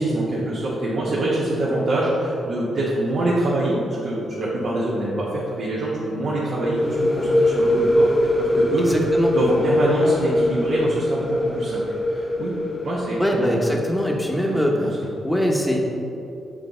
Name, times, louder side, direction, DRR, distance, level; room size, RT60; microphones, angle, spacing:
voice 1, 0.0-8.9 9.3-11.8 12.1-12.5 12.8-13.7 14.5-15.1, right 1 dB, 60° right, -7 dB, 1.1 m, -25 dB
sound 1, 6.6-14.2, left 1 dB, 30° left, 0.7 m, -22 dB
voice 2, 8.8-9.3 13.2-15.8, equal, 5° left, 0 dB, 1.0 m, -22 dB
6.4 x 4.0 x 3.7 m, 2.7 s
hypercardioid pair, 45°, 0 cm